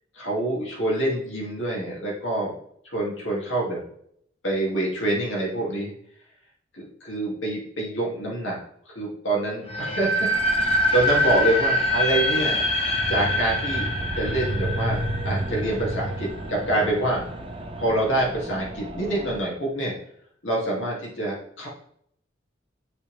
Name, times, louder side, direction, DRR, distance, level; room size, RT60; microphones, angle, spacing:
voice 1, 0.1-2.5 2.9-3.8 4.4-5.9 6.7-8.6 8.9-12.6 13.1-13.9 14.2-17.2 17.8-19.9 20.4-21.7, right 1 dB, 85° left, -4 dB, 2.6 m, -26 dB
sound 1, 9.7-16.5, left 1 dB, 30° left, 0.9 m, -25 dB
sound 2, 10.3-19.4, right 1 dB, 30° right, 0.6 m, -32 dB
7.4 x 4.4 x 3.4 m, 0.67 s
head